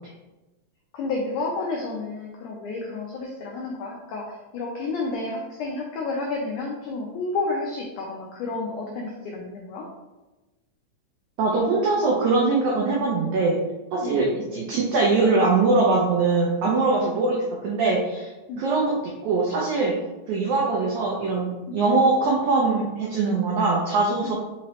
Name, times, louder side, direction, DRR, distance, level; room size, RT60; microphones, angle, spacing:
voice 1, 0.9-9.9 14.0-14.2 16.9-17.1 18.5-18.6 21.7-21.8 24.2-24.3, left 3 dB, 85° left, -1 dB, 1.7 m, -31 dB
voice 2, 11.4-13.6 13.9-18.3 18.6-18.9 19.2-19.9 20.3-24.3, right 3 dB, 85° right, -3 dB, 1.7 m, -22 dB
5.7 x 3.0 x 2.9 m, 1.1 s
omnidirectional pair, 4.3 m